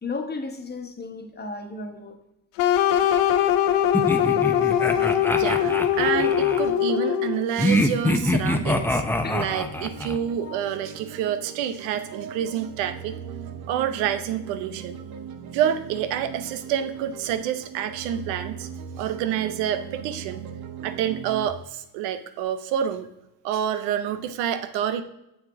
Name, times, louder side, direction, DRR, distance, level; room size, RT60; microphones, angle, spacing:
voice 1, 0.0-2.2 5.1-5.2 9.2-9.5 10.4-10.6, left 3 dB, 25° left, 1.3 m, -34 dB
sound 1, 2.6-7.5, left 10 dB, 80° left, 0.7 m, -21 dB
sound 2, 3.9-6.6 7.6-10.2, left 1 dB, 5° left, 0.7 m, -24 dB
voice 2, 5.4-9.1 9.3-13.2 13.7-15.0 15.5-18.7 19.0-20.4 20.8-23.1 23.4-25.0, right 9 dB, 85° right, 0.7 m, -28 dB
sound 3, 8.9-21.5, right 7 dB, 55° right, 0.9 m, -39 dB
7.2 x 6.2 x 3.6 m
supercardioid pair, 70°, 43 cm